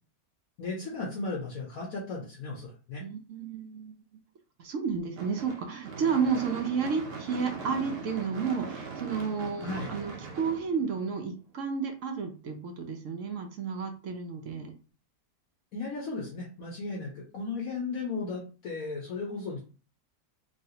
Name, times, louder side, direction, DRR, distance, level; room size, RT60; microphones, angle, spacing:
voice 1, 0.6-3.0 9.6-9.9 15.7-19.6, left 3 dB, 65° left, -2 dB, 1.1 m, -35 dB
voice 2, 3.0-4.0 4.6-14.7, right 6 dB, 65° right, 4 dB, 0.8 m, -32 dB
Gunshot gunfire / Fireworks, 5.2-11.4, right 4 dB, 85° right, 1.4 m, -40 dB
3.2 x 2.7 x 2.7 m, 0.36 s
omnidirectional pair, 1.8 m